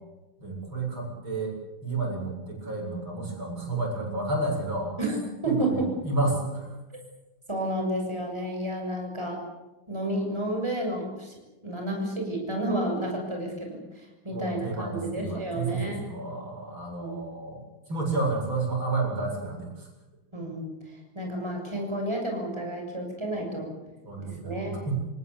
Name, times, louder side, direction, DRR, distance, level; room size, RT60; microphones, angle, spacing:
voice 1, 0.4-1.6 1.8-4.9 5.5-6.8 14.3-19.9 24.0-25.1, right 3 dB, 70° right, 0 dB, 8.7 m, -31 dB
voice 2, 5.4-5.9 7.5-9.4 9.9-11.3 11.6-16.0 17.0-17.2 20.3-23.7 24.3-24.8, right 1 dB, 10° right, 1 dB, 6.9 m, -31 dB
28.0 x 18.5 x 8.4 m, 1.0 s
omnidirectional pair, 2.3 m